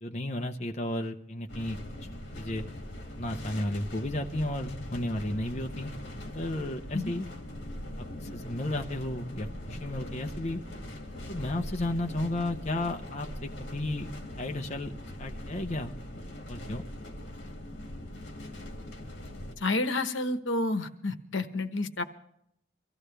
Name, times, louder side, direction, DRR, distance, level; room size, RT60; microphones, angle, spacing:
voice 1, 0.0-1.8 2.4-2.7 3.2-5.9 6.3-7.3 8.0-10.6 11.3-14.1 14.4-14.9 15.2-15.9 16.5-16.8, left 1 dB, 35° left, 3 dB, 0.8 m, -33 dB
sound 1, 1.5-19.5, left 1 dB, 60° left, 2.4 m, -41 dB
voice 2, 19.6-22.0, left 2 dB, 85° left, 8 dB, 1.1 m, -30 dB
24.0 x 15.0 x 3.4 m, 0.75 s
head